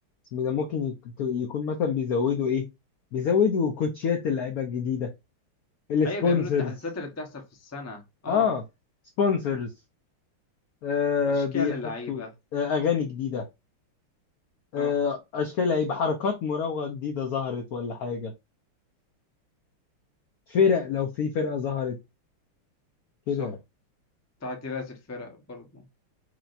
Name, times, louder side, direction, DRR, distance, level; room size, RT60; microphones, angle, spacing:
voice 1, 0.3-2.7 3.1-5.1 5.9-6.7 8.3-8.6 9.2-9.7 10.8-11.7 12.1-12.2 12.5-13.5 14.7-18.3 20.5-22.0 23.3-23.6, left 6 dB, 85° left, 0.8 m, -26 dB
voice 2, 6.0-8.5 11.3-12.3 14.7-14.9 23.4-23.5 24.4-25.8, left 2 dB, 20° left, 0.4 m, -36 dB
4.8 x 2.9 x 2.5 m
omnidirectional pair, 2.4 m